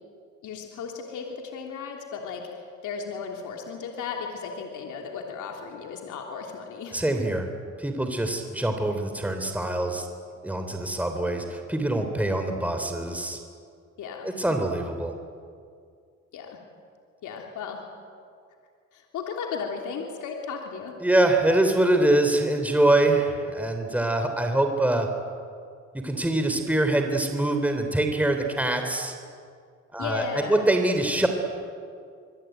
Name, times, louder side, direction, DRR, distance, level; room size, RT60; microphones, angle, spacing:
voice 1, 0.4-7.0 14.0-14.3 16.3-16.6 17.2-17.8 18.9-20.9 30.0-30.6, left 5 dB, 80° left, 1 dB, 3.3 m, -35 dB
voice 2, 6.9-7.5 7.8-10.1 10.4-13.4 14.2-15.1 21.0-25.1 26.0-29.2 29.9-31.3, right 1 dB, 5° right, 5 dB, 3.5 m, -24 dB
25.5 x 22.5 x 9.3 m, 2.2 s
cardioid pair, 90°, 30 cm